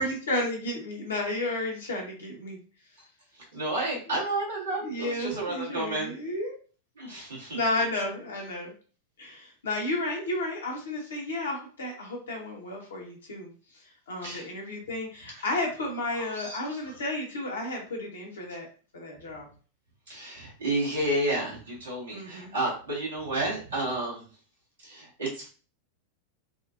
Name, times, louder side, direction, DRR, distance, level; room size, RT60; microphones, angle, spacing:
voice 1, 0.0-2.6 4.8-6.5 7.5-8.7 9.2-13.5 14.1-18.7 18.9-19.5 22.1-22.5, left 1 dB, 65° left, -1 dB, 1.2 m, -32 dB
voice 2, 3.3-6.1 7.0-7.6 14.2-14.5 15.3-15.4 16.1-16.8 20.1-24.2 24.8-25.5, right 1 dB, 70° right, -5 dB, 1.7 m, -31 dB
4.1 x 2.4 x 2.5 m, 0.38 s
figure-of-eight pair, 90°, 0 cm